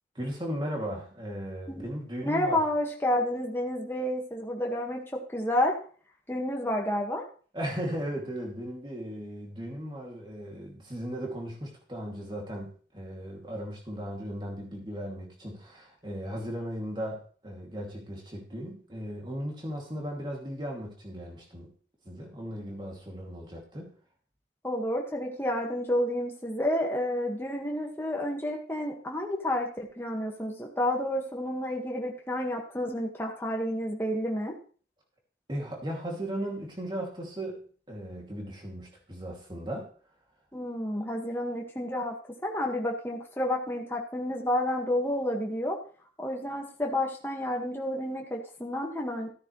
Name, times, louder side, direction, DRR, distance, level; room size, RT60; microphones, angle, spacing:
voice 1, 0.1-2.6 7.5-21.7 22.0-23.9 35.5-37.6 37.9-39.9, equal, 25° right, 0 dB, 2.6 m, -36 dB
voice 2, 2.2-5.7 6.3-7.2 24.6-34.6 40.5-45.8 46.2-49.3, left 1 dB, 15° left, 0 dB, 1.7 m, -30 dB
14.0 x 9.5 x 3.2 m, 0.42 s
head